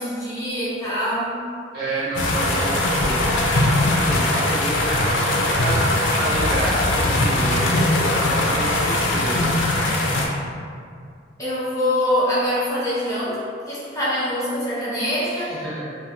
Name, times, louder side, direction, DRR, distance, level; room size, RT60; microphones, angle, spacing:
voice 1, 0.0-1.3 11.4-15.5, left 1 dB, 15° left, -10 dB, 0.7 m, -24 dB
voice 2, 1.7-3.4 3.8-5.8 6.1-9.5 15.3-15.9, right 2 dB, 55° right, -9 dB, 0.8 m, -30 dB
sound 1, 2.1-10.3, left 1 dB, 75° left, 0.4 m, -20 dB
2.5 x 2.4 x 2.8 m, 2.2 s
head